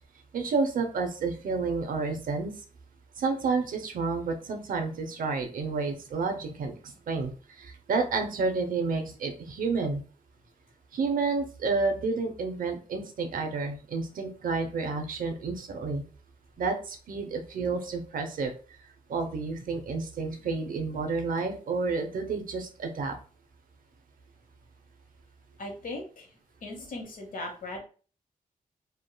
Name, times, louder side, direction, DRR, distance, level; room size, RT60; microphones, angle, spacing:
voice 1, 0.3-2.5 3.2-7.3 7.6-10.0 10.9-16.0 16.6-18.5 19.1-23.1, right 4 dB, 70° right, 5 dB, 0.6 m, -30 dB
voice 2, 25.6-27.8, left 2 dB, 65° left, 2 dB, 1.0 m, -39 dB
3.4 x 2.2 x 2.2 m, 0.38 s
wide cardioid pair, 135°, 15 cm